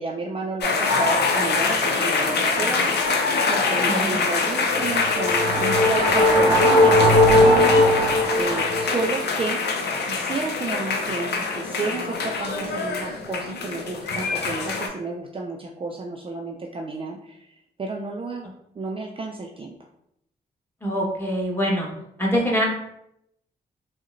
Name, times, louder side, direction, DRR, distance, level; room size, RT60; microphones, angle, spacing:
voice 1, 0.0-9.6 10.0-17.5 17.8-19.7, right 3 dB, 30° right, 0 dB, 0.4 m, -31 dB
sound 1, 0.6-14.9, left 4 dB, 70° left, 0.5 m, -24 dB
voice 2, 3.8-4.2 20.8-21.9 22.2-22.7, equal, 10° left, -2 dB, 1.2 m, -24 dB
sound 2, 4.7-9.0, left 1 dB, 40° left, 1.5 m, -18 dB
3.6 x 2.1 x 2.5 m, 0.77 s
supercardioid pair, 50°, 18 cm